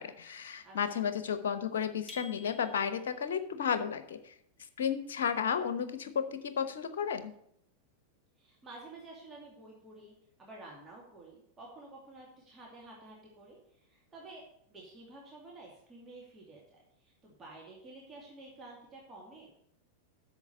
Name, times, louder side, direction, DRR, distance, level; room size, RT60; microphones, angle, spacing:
voice 1, 0.0-4.3 4.8-7.3, left 7 dB, 60° left, 11 dB, 1.0 m, -33 dB
voice 2, 0.6-1.0 8.4-19.5, right 2 dB, 20° right, -3 dB, 2.5 m, -51 dB
sound 1, 2.1-3.2, left 4 dB, 10° left, 1.4 m, -51 dB
8.3 x 6.7 x 6.7 m, 0.72 s
figure-of-eight pair, 90°, 0 cm